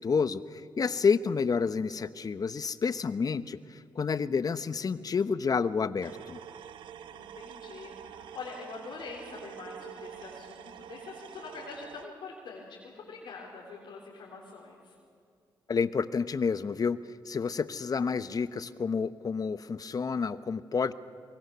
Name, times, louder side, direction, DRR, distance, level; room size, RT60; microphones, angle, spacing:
voice 1, 0.0-6.4 15.7-17.0 17.3-20.9, left 5 dB, 50° left, 14 dB, 0.9 m, -29 dB
sound 1, 6.0-12.1, right 9 dB, 85° right, 0.8 m, -46 dB
voice 2, 7.1-14.9, left 4 dB, 80° left, -4 dB, 3.6 m, -44 dB
23.5 x 23.0 x 6.9 m, 2.3 s
cardioid pair, 55°, 8 cm